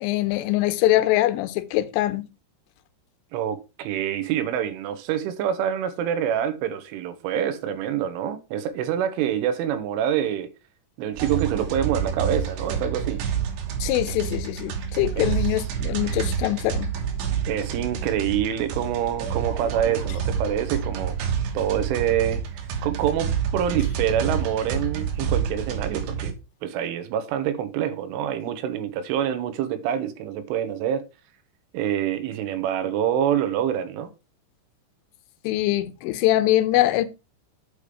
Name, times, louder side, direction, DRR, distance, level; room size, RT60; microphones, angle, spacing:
voice 1, 0.0-2.3 13.8-16.9 35.4-37.1, left 15 dB, 85° left, 3.3 m, -23 dB
voice 2, 3.3-10.5 11.0-13.2 15.2-15.3 17.5-21.2 21.6-26.4 26.6-31.1 31.7-34.1, right 9 dB, 90° right, 3.5 m, -26 dB
sound 1, 11.1-26.3, right 7 dB, 70° right, 3.2 m, -28 dB
8.4 x 5.1 x 4.8 m
omnidirectional pair, 5.5 m